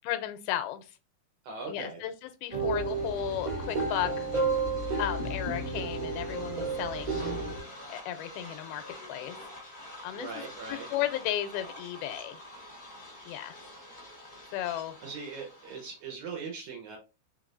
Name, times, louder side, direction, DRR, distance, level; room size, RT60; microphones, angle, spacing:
voice 1, 0.0-0.9 1.7-4.3 5.0-7.2 7.9-9.4 10.0-10.4 10.7-12.4 13.3-13.6 14.5-14.9, left 12 dB, 85° left, 10 dB, 2.6 m, -34 dB
voice 2, 1.4-2.0 10.2-10.9 15.0-17.0, right 4 dB, 70° right, 0 dB, 1.9 m, -40 dB
sound 1, 2.5-16.1, left 1 dB, 35° left, 1.0 m, -48 dB
sound 2, 2.5-7.6, right 3 dB, 35° right, 1.5 m, -31 dB
5.3 x 3.8 x 2.5 m, 0.30 s
omnidirectional pair, 4.3 m